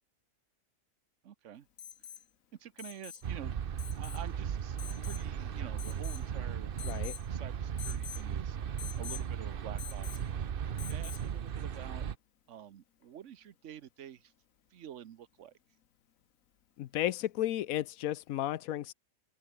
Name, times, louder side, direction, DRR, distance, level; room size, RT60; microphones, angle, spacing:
voice 1, 1.2-1.7 2.6-4.8 5.0-6.7 7.3-12.0 12.5-14.3 14.7-15.5, right 10 dB, 65° right, 1.2 m, -49 dB
Alarm, 1.8-2.2 2.8-3.3 3.8-4.2 4.8-5.3 5.8-6.3 6.8-7.3 7.8-8.2 8.8-9.3 9.8-10.3 10.8-11.3 13.0-13.1, left 9 dB, 70° left, 1.5 m, -46 dB
sound 1, 3.2-12.2, right 8 dB, 45° right, 0.9 m, -36 dB
voice 2, 16.8-18.9, left 13 dB, 90° left, 1.1 m, -33 dB
open air
omnidirectional pair, 1.5 m